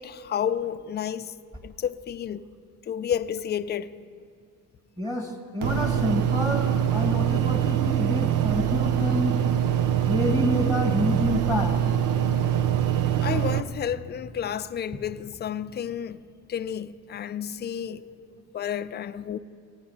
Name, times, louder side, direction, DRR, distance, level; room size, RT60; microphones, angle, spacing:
voice 1, 0.0-1.3 1.6-2.4 2.8-4.0 13.2-16.2 16.5-18.0 18.5-19.4, left 9 dB, 35° left, 0.4 m, -31 dB
voice 2, 5.0-9.4 10.1-11.8 18.0-18.1, left 1 dB, 15° right, 1.6 m, -28 dB
sound 1, 5.6-13.6, right 10 dB, 80° right, 0.7 m, -24 dB
16.0 x 9.6 x 5.7 m
cardioid pair, 90°, 30 cm